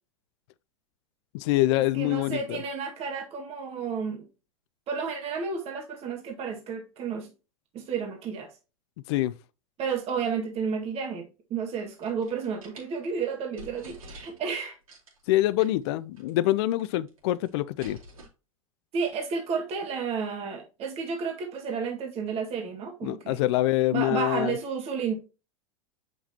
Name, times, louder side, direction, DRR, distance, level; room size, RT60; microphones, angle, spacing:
voice 1, 1.3-2.6 9.1-9.3 15.3-18.0 23.0-24.6, left 16 dB, 50° left, 0.5 m, -25 dB
voice 2, 1.9-4.3 4.9-7.3 7.7-8.5 9.8-14.8 18.9-23.4 23.9-25.2, right 5 dB, 35° right, 1.8 m, -32 dB
sound 1, 11.8-12.9 13.3-13.4 13.6-14.5 14.9-15.2 15.6-15.9 16.2-16.3 16.6-17.2 17.4-18.3, right 1 dB, 80° right, 3.7 m, -48 dB
7.9 x 6.1 x 2.9 m
figure-of-eight pair, 90°, 17 cm